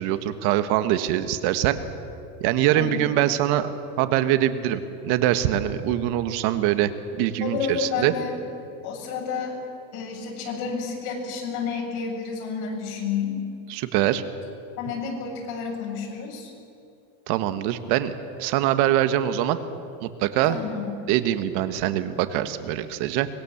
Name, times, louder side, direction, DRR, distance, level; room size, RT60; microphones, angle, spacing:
voice 1, 0.0-1.8 2.4-3.7 4.0-8.1 13.7-14.2 17.3-18.1 18.4-19.6 20.0-20.6 21.1-23.3, right 12 dB, 65° right, 10 dB, 1.7 m, -23 dB
voice 2, 2.8-3.1 7.4-8.4 8.8-9.6 9.9-13.4 14.8-16.5 20.5-20.9, left 6 dB, 60° left, 0 dB, 7.2 m, -30 dB
25.0 x 20.5 x 7.3 m, 2.7 s
supercardioid pair, 125°, 43 cm